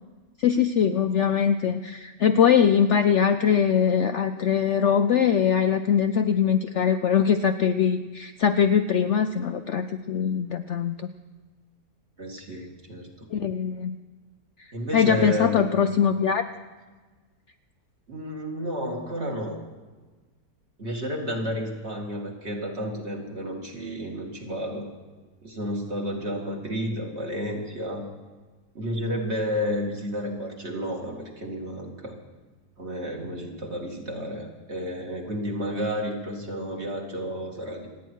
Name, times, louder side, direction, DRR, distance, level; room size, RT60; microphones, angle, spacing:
voice 1, 0.4-11.1 13.3-14.0 14.6-16.4, left 7 dB, 65° left, 8 dB, 0.7 m, -22 dB
voice 2, 12.2-13.3 14.7-15.7 18.1-19.6 20.8-24.9 25.4-28.1 28.7-32.2 32.8-37.9, equal, 45° right, 0 dB, 2.4 m, -31 dB
28.5 x 9.5 x 4.6 m, 1.3 s
omnidirectional pair, 1.7 m